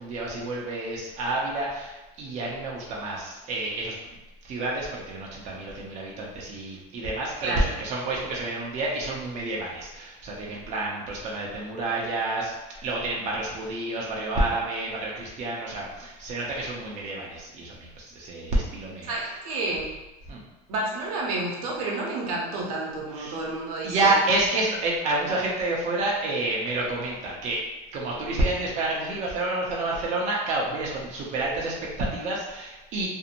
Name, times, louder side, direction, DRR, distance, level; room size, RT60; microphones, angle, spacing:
voice 1, 0.0-4.0 4.4-12.5 12.8-19.1 20.3-20.4 23.2-23.4 23.8-27.6 27.9-33.1, right 2 dB, 35° right, -3 dB, 0.5 m, -29 dB
voice 2, 7.4-7.7 19.0-19.9 20.7-24.2, right 2 dB, 75° right, -2 dB, 0.7 m, -30 dB
2.5 x 2.0 x 2.8 m, 1.0 s
supercardioid pair, 135°, 19 cm